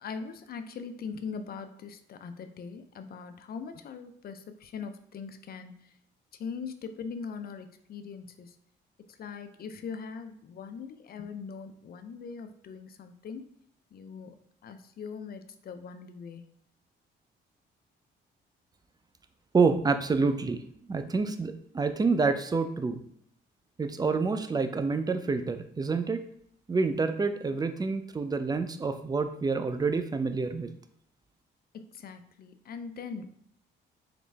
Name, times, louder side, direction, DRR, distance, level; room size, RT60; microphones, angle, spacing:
voice 1, 0.0-5.7 6.4-8.5 9.2-13.4 13.9-14.4 14.6-16.5 31.7-33.3, left 5 dB, 50° left, 9 dB, 0.5 m, -41 dB
voice 2, 19.5-20.6 20.9-23.0 23.8-26.2 26.7-30.7, right 4 dB, 20° right, 9 dB, 0.4 m, -27 dB
3.9 x 3.1 x 3.4 m, 0.68 s
cardioid pair, 90°, 20 cm